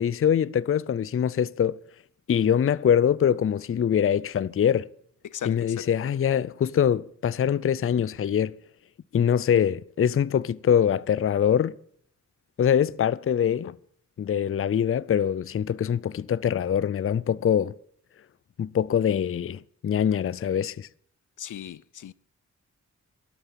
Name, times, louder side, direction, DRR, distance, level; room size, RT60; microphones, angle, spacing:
voice 1, 0.0-1.8 2.3-4.9 5.5-8.5 9.1-11.7 12.6-13.8 14.2-17.7 18.6-20.9, left 8 dB, 45° left, 0.5 m, -23 dB
voice 2, 5.2-5.9 21.4-22.1, left 10 dB, 85° left, 0.7 m, -37 dB
13.0 x 11.5 x 6.9 m
wide cardioid pair, 140°, 30 cm